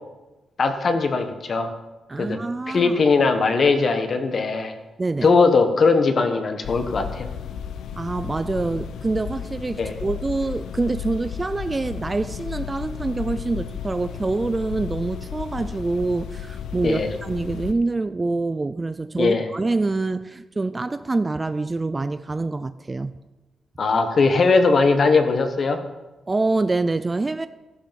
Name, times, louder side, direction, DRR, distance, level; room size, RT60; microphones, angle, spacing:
voice 1, 0.6-1.7 2.2-2.4 2.7-4.7 5.2-7.3 9.8-9.9 16.8-17.1 19.2-19.5 23.8-25.8, left 4 dB, 40° left, 1.5 m, -20 dB
voice 2, 2.1-3.0 5.0-5.3 8.0-23.2 26.3-27.5, right 3 dB, 20° right, 0.4 m, -26 dB
sound 1, 6.6-17.7, left 8 dB, 85° left, 0.7 m, -34 dB
16.0 x 11.5 x 5.3 m
wide cardioid pair, 165°, 0 cm